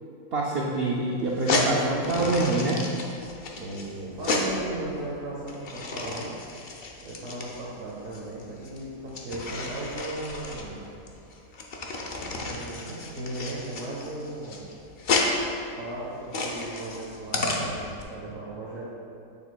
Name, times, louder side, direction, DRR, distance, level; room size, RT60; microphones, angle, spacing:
voice 1, 0.3-2.8, right 2 dB, 80° right, -3 dB, 0.5 m, -26 dB
sound 1, 1.3-18.0, left 2 dB, 60° left, 0.5 m, -32 dB
voice 2, 3.5-6.3 7.0-10.8 12.3-14.7 15.8-18.8, right 2 dB, 55° right, -7 dB, 1.3 m, -36 dB
8.6 x 6.8 x 2.3 m, 2.6 s
omnidirectional pair, 1.7 m